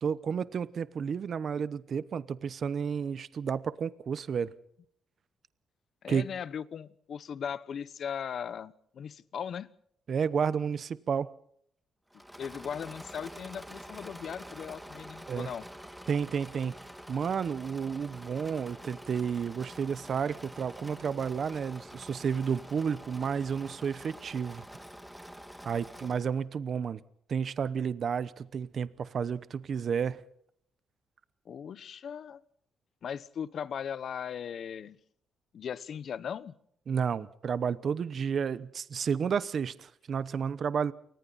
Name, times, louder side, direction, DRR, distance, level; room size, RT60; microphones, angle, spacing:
voice 1, 0.0-4.5 6.1-6.2 10.1-11.3 15.3-15.5 16.1-16.7 17.1-24.6 25.6-27.0 27.3-30.2 36.9-40.9, right 6 dB, 45° right, 0.9 m, -31 dB
voice 2, 6.0-9.7 12.4-15.6 31.5-32.4 33.0-35.0 35.5-36.5, left 8 dB, 50° left, 1.0 m, -38 dB
Engine / Mechanisms, 12.1-26.4, equal, ahead, 1.7 m, -47 dB
28.5 x 24.5 x 4.1 m
cardioid pair, 140°, 0 cm